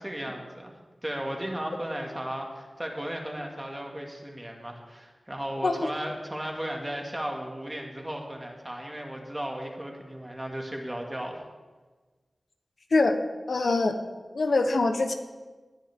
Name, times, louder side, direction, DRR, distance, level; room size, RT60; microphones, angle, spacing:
voice 1, 0.0-11.4, equal, 15° right, 1 dB, 2.0 m, -35 dB
voice 2, 13.5-13.9 14.3-15.1, left 3 dB, 75° left, 6 dB, 1.0 m, -23 dB
19.0 x 9.8 x 3.7 m, 1.3 s
wide cardioid pair, 90°, 0 cm